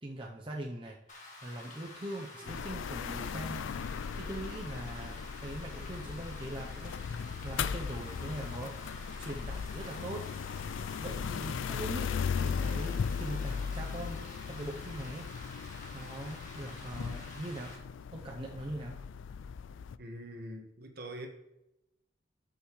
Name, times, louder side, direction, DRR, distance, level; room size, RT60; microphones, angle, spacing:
voice 1, 0.0-3.7 4.1-10.3 11.0-15.3 15.9-17.8 18.1-19.0, right 1 dB, 25° right, -1 dB, 0.7 m, -42 dB
Rain, 1.1-17.8, left 2 dB, 40° left, 1.8 m, -50 dB
sound 1, 2.5-20.0, left 6 dB, 80° left, 0.3 m, -37 dB
voice 2, 20.0-21.3, right 1 dB, 50° right, 3 dB, 1.5 m, -43 dB
13.0 x 5.8 x 3.2 m, 0.88 s
head